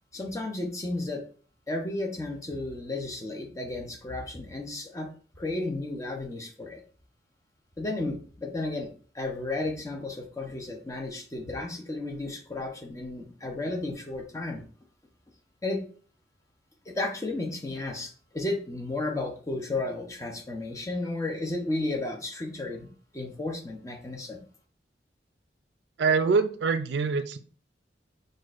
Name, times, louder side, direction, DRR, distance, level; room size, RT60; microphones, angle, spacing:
voice 1, 0.1-1.2 1.7-5.1 5.4-6.8 7.8-8.9 9.1-14.6 15.6-15.8 16.9-22.9 23.1-24.4, left 2 dB, 20° left, 2 dB, 0.7 m, -33 dB
voice 2, 26.0-27.4, right 4 dB, 70° right, 11 dB, 0.4 m, -24 dB
6.0 x 2.5 x 2.5 m, 0.41 s
head